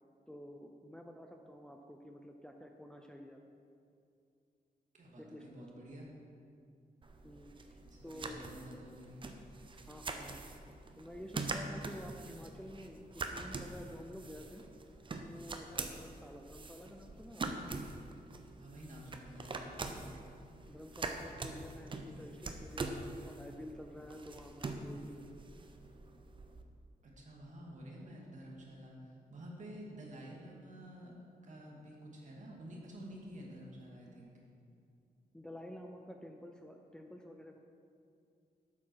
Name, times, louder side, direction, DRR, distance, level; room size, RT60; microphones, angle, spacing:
voice 1, 0.3-3.4 5.2-5.6 7.2-8.4 9.9-10.4 11.0-14.6 15.2-17.6 20.7-25.2 35.3-37.6, left 1 dB, 5° left, 3 dB, 0.5 m, -50 dB
voice 2, 4.9-6.1 7.8-9.3 18.6-20.1 27.0-34.3, equal, 50° right, -3 dB, 2.3 m, -50 dB
sound 1, 7.0-26.6, right 3 dB, 30° right, 0.7 m, -44 dB
12.0 x 8.5 x 4.7 m, 2.4 s
wide cardioid pair, 170°, 16 cm